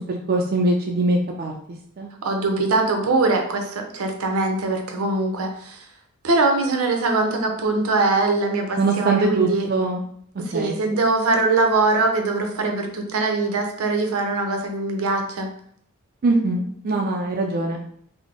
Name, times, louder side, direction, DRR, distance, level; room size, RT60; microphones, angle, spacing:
voice 1, 0.0-1.5 2.0-2.1 8.8-10.0 10.5-10.8 16.2-17.8, right 2 dB, 45° right, 1 dB, 0.3 m, -22 dB
voice 2, 2.2-5.8 6.2-9.7 10.4-15.5, right 3 dB, 80° right, 3 dB, 0.6 m, -22 dB
3.9 x 2.0 x 3.4 m, 0.64 s
head